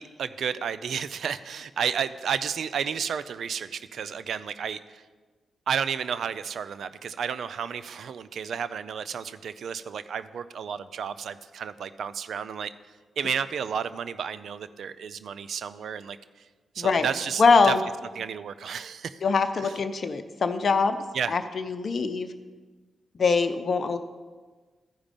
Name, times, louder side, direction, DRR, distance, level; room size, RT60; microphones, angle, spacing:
voice 1, 0.0-5.0 5.7-12.7 13.2-16.2 16.7-17.7 18.2-19.2 21.1-21.3, right 7 dB, 75° right, 14 dB, 0.4 m, -32 dB
voice 2, 16.8-17.1 17.4-17.8 19.2-21.0 21.3-22.3 23.2-24.0, left 4 dB, 60° left, 8 dB, 0.6 m, -23 dB
13.5 x 4.9 x 5.3 m, 1.4 s
supercardioid pair, 45°, 0 cm